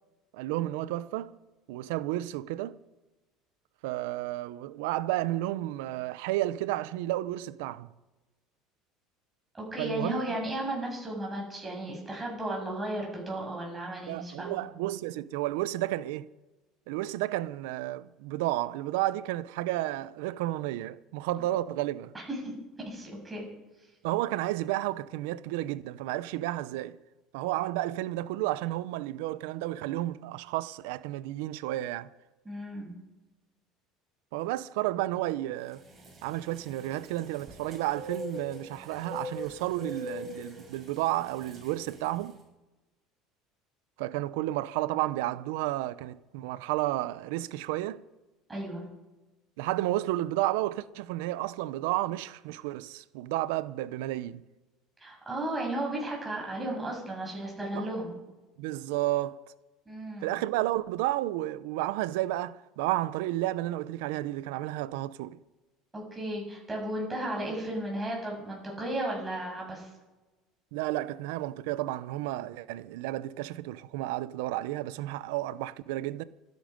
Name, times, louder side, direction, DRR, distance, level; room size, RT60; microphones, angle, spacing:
voice 1, 0.3-1.4 1.7-2.8 3.8-7.9 9.8-10.4 14.1-16.3 16.9-22.1 24.0-27.0 27.3-32.1 34.3-35.8 36.2-42.4 44.0-48.0 49.6-54.4 57.7-57.9 58.6-59.4 60.2-65.4 70.7-76.2, right 16 dB, 90° right, 0.7 m, -32 dB
voice 2, 9.5-14.6 22.1-22.5 22.9-23.5 32.5-32.9 48.5-48.8 55.0-58.2 59.9-60.3 65.9-69.9, right 1 dB, 10° right, 7.0 m, -34 dB
sound 1, 35.7-42.3, left 1 dB, 30° right, 7.1 m, -43 dB
25.0 x 10.5 x 5.3 m
cardioid pair, 145°, 0 cm